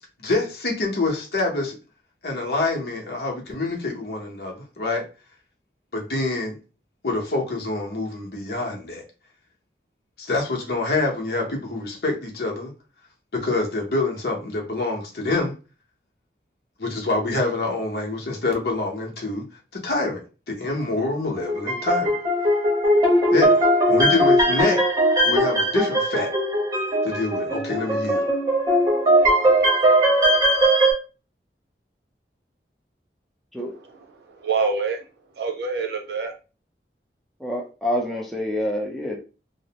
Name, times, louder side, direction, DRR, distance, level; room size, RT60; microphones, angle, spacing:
voice 1, 0.2-1.7 2.2-5.0 5.9-6.6 7.0-9.0 10.2-12.7 13.3-15.5 16.8-19.4 19.7-20.2 20.5-22.2 23.3-23.6 23.9-24.8 25.2-26.3 27.0-28.3, left 2 dB, 65° left, 0 dB, 0.8 m, -26 dB
sound 1, 21.4-30.9, right 1 dB, 20° right, 0.8 m, -19 dB
voice 2, 33.6-35.0 35.3-36.3, right 4 dB, 70° right, 3 dB, 0.6 m, -27 dB
voice 3, 37.4-39.2, left 1 dB, ahead, -1 dB, 0.5 m, -27 dB
2.6 x 2.0 x 2.8 m, 0.33 s
head